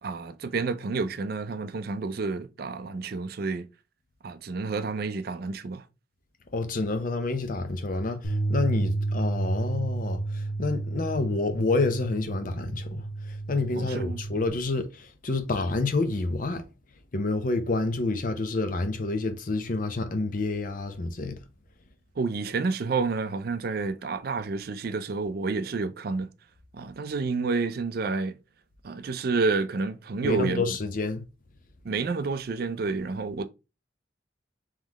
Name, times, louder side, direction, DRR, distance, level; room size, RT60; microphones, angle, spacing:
voice 1, 0.0-3.7 4.2-5.8 13.8-14.2 22.2-26.3 26.7-28.4 28.8-30.6 31.8-33.4, right 4 dB, 50° right, 0.4 m, -29 dB
voice 2, 6.5-16.6 17.1-21.4 30.2-31.2, left 3 dB, 45° left, 0.6 m, -28 dB
Bass guitar, 8.2-14.5, right 2 dB, 80° left, 1.0 m, -31 dB
3.7 x 3.1 x 3.5 m
head